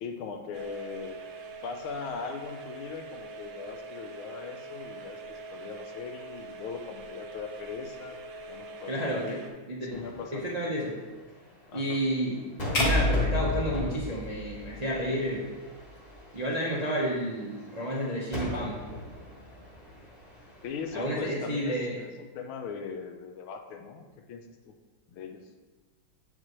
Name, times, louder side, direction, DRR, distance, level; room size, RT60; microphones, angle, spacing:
voice 1, 0.0-1.2 1.6-8.2 8.5-9.4 9.9-10.5 11.7-12.0 20.6-24.7 25.1-25.4, left 5 dB, 85° left, 5 dB, 1.6 m, -40 dB
sound 1, 0.5-9.5, right 2 dB, 75° right, 1.5 m, -43 dB
voice 2, 8.9-9.4 9.7-10.0 10.3-11.0 11.7-12.4 12.7-15.4 16.3-18.8 20.9-22.0, equal, 45° right, -5 dB, 0.5 m, -30 dB
sound 2, 9.9-21.2, left 1 dB, 25° left, 1.1 m, -42 dB
sound 3, 12.7-15.0, left 1 dB, 45° left, 0.8 m, -28 dB
8.0 x 5.8 x 3.1 m, 1.3 s
omnidirectional pair, 2.2 m